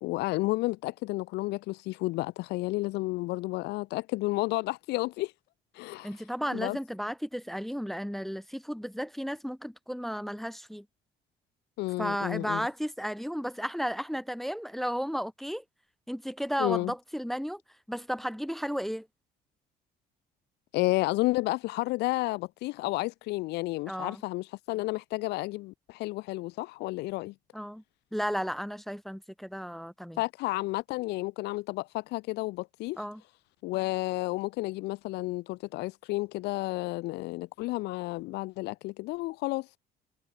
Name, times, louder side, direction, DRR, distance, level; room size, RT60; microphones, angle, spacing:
voice 1, 0.0-5.3 5.7-6.1 6.5-6.8 11.8-12.7 16.6-16.9 20.7-27.3 30.2-33.0 33.6-39.7, left 20 dB, 80° left, 0.4 m, -31 dB
voice 2, 6.0-10.8 12.0-15.6 16.1-17.6 17.9-19.1 23.9-24.2 27.5-27.8 28.1-30.2 33.0-33.2, equal, ahead, 0.6 m, -34 dB
cardioid pair, 110°, 17 cm